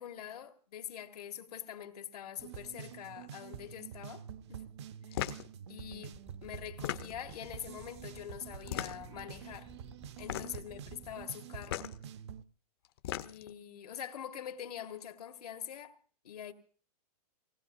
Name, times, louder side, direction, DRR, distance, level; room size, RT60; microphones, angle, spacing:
voice 1, 0.0-4.6 5.0-5.2 5.7-9.7 10.2-11.9 13.2-16.0 16.2-16.5, left 9 dB, 80° left, 1.8 m, -44 dB
sound 1, 2.4-12.4, right 9 dB, 45° right, 0.6 m, -48 dB
sound 2, 5.1-5.5 6.7-7.4 8.6-9.2 10.2-10.7 11.6-11.9 12.8-13.5, left 12 dB, 40° left, 0.6 m, -37 dB
sound 3, 6.1-11.2, right 2 dB, 5° right, 0.6 m, -54 dB
24.5 x 18.5 x 2.6 m
hypercardioid pair, 170°, 20 cm